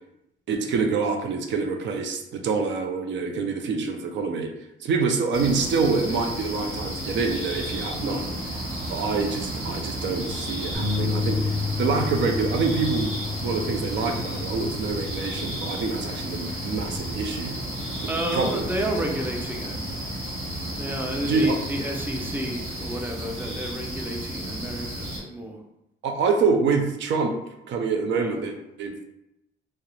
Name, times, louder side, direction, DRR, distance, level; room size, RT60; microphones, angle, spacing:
voice 1, 0.5-4.5 4.8-8.3 8.9-13.1 13.4-17.6 18.3-18.6 21.2-21.6 26.0-27.4 27.7-29.0, right 4 dB, 65° right, 4 dB, 0.5 m, -26 dB
sound 1, 5.3-25.2, right 1 dB, 85° right, 1.0 m, -32 dB
voice 2, 8.0-8.4 18.0-19.8 20.8-25.6 28.1-28.4, right 1 dB, 10° right, 2 dB, 0.5 m, -31 dB
Bass guitar, 10.7-17.0, left 4 dB, 40° right, 1.0 m, -31 dB
2.4 x 2.0 x 2.9 m, 0.85 s
cardioid pair, 90°, 20 cm